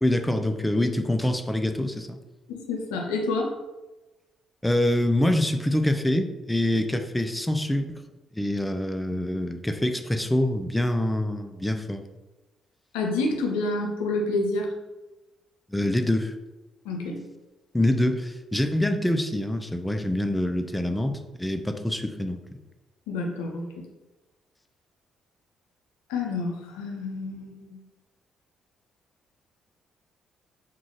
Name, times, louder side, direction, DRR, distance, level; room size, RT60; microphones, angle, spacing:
voice 1, 0.0-2.2 4.6-8.0 8.3-12.0 15.7-16.3 17.7-22.4, left 1 dB, 10° left, 7 dB, 0.4 m, -25 dB
voice 2, 2.5-3.6 12.9-14.7 16.8-17.2 23.1-23.8 26.1-27.8, left 2 dB, 85° left, 1 dB, 0.5 m, -28 dB
3.6 x 2.4 x 3.0 m, 1.1 s
hypercardioid pair, 50°, 0 cm